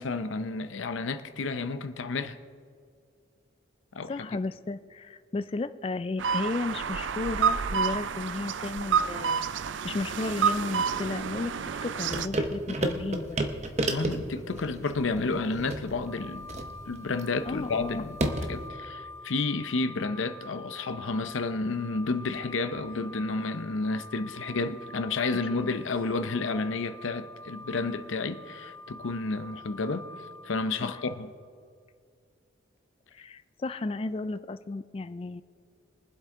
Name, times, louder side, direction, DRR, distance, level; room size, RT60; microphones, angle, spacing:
voice 1, 0.0-2.4 3.9-4.3 13.8-16.5 16.9-18.2 18.4-30.1 30.4-31.3, left 3 dB, 85° left, 10 dB, 0.6 m, -31 dB
voice 2, 4.1-9.5 9.8-11.5 11.8-13.4 17.5-18.1 25.5-25.7 30.8-31.0 33.1-35.4, left 3 dB, 30° left, 12 dB, 0.3 m, -33 dB
sound 1, 6.2-12.3, right 6 dB, 75° right, 0.5 m, -29 dB
sound 2, 12.1-18.7, right 1 dB, 35° right, 0.9 m, -32 dB
sound 3, 16.0-31.1, left 2 dB, 10° left, 2.8 m, -46 dB
23.0 x 7.8 x 3.7 m, 2.2 s
head